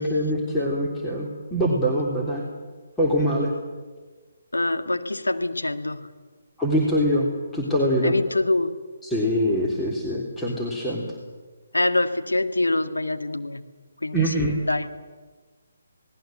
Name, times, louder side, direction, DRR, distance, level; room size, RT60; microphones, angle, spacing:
voice 1, 0.0-2.4 3.0-3.5 6.6-7.3 7.5-8.1 9.1-11.0 14.1-14.7, equal, 5° left, -4 dB, 3.3 m, -23 dB
voice 2, 4.5-6.1 8.0-8.7 11.7-13.6 14.0-15.0, left 2 dB, 80° left, 7 dB, 1.9 m, -25 dB
28.0 x 18.5 x 7.8 m, 1.4 s
figure-of-eight pair, 145°, 0 cm